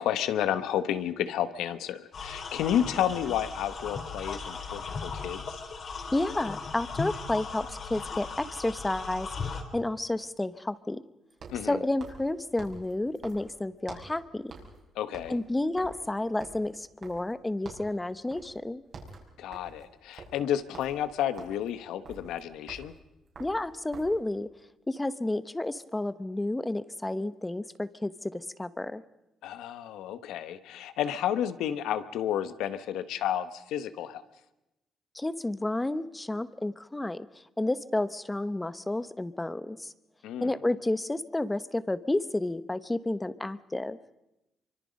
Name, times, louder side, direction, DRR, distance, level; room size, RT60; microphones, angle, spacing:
voice 1, 0.0-5.6 11.5-11.8 14.9-15.4 19.4-22.9 29.4-34.2 40.2-40.5, left 10 dB, 90° left, 12 dB, 1.1 m, -31 dB
sound 1, 2.1-9.6, left 4 dB, 50° left, 3.4 m, -37 dB
voice 2, 6.1-11.0 11.7-14.5 15.3-18.8 23.4-24.5 24.9-29.0 35.1-37.3 37.6-39.9 40.4-44.0, left 2 dB, 15° left, 15 dB, 0.9 m, -31 dB
sound 2, 11.3-14.2 14.5-14.8 15.1-17.4 17.6-18.0 18.3-18.6 18.8-24.2, right 3 dB, 55° right, 5.7 m, -48 dB
25.0 x 24.5 x 5.3 m, 0.93 s
cardioid pair, 90°, 0 cm